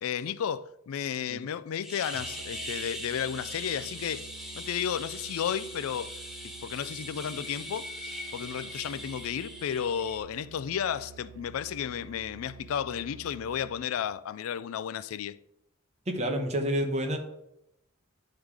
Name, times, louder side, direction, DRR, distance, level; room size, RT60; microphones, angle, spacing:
voice 1, 0.0-4.2 4.5-6.1 6.6-15.4, left 8 dB, 80° left, 0.3 m, -33 dB
sound 1, 1.8-10.2, equal, ahead, 1.2 m, -41 dB
Musical instrument, 2.1-14.0, right 6 dB, 70° right, 0.7 m, -49 dB
voice 2, 16.1-17.2, equal, 35° right, 1.1 m, -29 dB
10.0 x 3.7 x 4.8 m
head